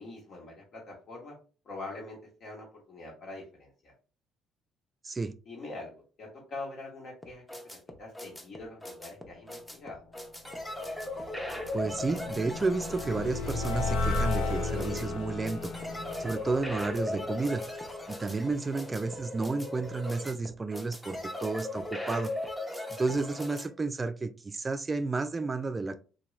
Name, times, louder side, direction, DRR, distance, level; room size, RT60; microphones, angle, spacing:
voice 1, 0.0-1.4 1.6-3.9 5.5-10.0, left 2 dB, 60° left, 1.2 m, -44 dB
sound 1, 7.2-23.7, left 1 dB, 5° left, 0.6 m, -38 dB
sound 2, 10.6-17.8, left 2 dB, 75° left, 0.5 m, -34 dB
voice 2, 11.7-15.7 16.2-17.7 18.1-22.3 22.9-26.0, right 3 dB, 30° right, 0.3 m, -31 dB
Bowed string instrument, 13.8-18.0, left 3 dB, 35° left, 0.9 m, -44 dB
2.9 x 2.2 x 3.0 m
supercardioid pair, 65°, 0 cm